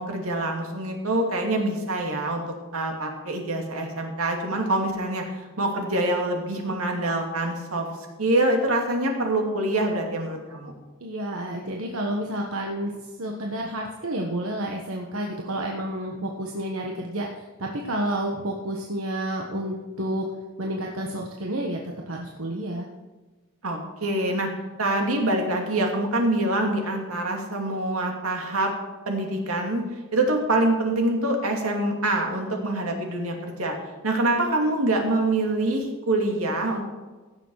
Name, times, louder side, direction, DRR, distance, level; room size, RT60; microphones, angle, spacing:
voice 1, 0.0-2.4 2.7-5.2 5.6-7.9 8.2-10.7 23.6-24.5 24.8-28.7 29.1-29.8 30.1-33.8 34.0-36.8, right 1 dB, 90° right, 2 dB, 2.5 m, -25 dB
voice 2, 11.0-20.2 20.6-21.8 22.1-22.9, right 1 dB, 75° right, 0 dB, 1.3 m, -30 dB
16.5 x 7.1 x 4.8 m, 1.3 s
head